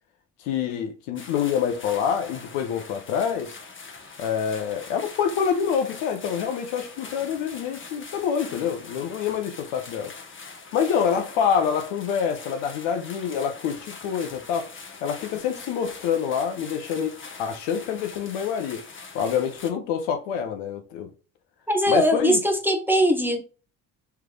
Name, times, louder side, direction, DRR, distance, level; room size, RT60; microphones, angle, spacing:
voice 1, 0.4-3.6 4.2-10.1 10.7-14.7 15.0-17.1 17.4-18.8 19.1-21.1 21.9-22.4, left 7 dB, 70° left, 0.8 m, -26 dB
sound 1, 1.2-19.7, left 4 dB, 25° left, 0.9 m, -43 dB
voice 2, 21.7-23.4, equal, 5° right, 0.8 m, -21 dB
3.4 x 3.3 x 2.2 m
hypercardioid pair, 50°, 43 cm